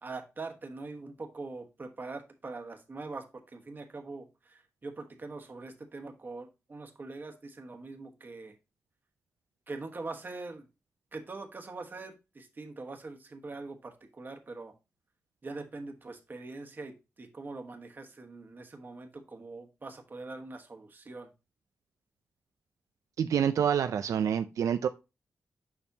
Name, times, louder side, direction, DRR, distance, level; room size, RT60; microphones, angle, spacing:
voice 1, 0.0-8.6 9.7-10.7 11.1-14.7 15.4-21.3, right 3 dB, 35° right, 5 dB, 1.3 m, -43 dB
voice 2, 23.2-24.9, right 8 dB, 85° right, 9 dB, 0.4 m, -27 dB
7.0 x 5.3 x 2.7 m, 0.27 s
wide cardioid pair, 100°, 5 cm